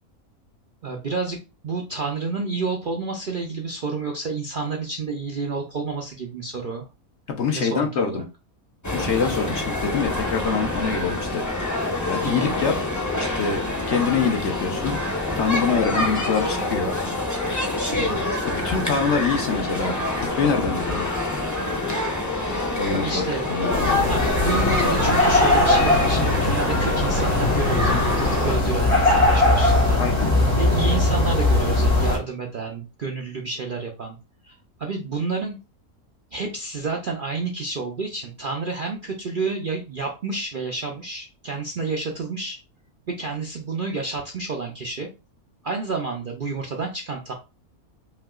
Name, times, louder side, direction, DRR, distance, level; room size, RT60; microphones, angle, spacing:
voice 1, 0.8-1.4 1.6-6.9 7.5-8.2 12.3-12.6 15.9-16.0 17.9-18.3 22.9-23.4 24.0-30.1 30.6-34.2 34.4-35.6 36.3-42.6 43.1-45.1 45.6-47.3, right 4 dB, 55° right, 1 dB, 0.6 m, -30 dB
voice 2, 7.3-8.2 8.9-11.4 12.1-12.7 13.3-15.0 15.4-17.0 18.5-21.2 22.8-23.7 30.0-30.3, left 5 dB, 55° left, 3 dB, 0.9 m, -25 dB
sound 1, 8.8-28.5, left 2 dB, 20° left, 0.6 m, -26 dB
sound 2, 23.7-32.2, left 2 dB, 85° left, 2.5 m, -20 dB
5.5 x 2.8 x 2.4 m, 0.30 s
omnidirectional pair, 1.5 m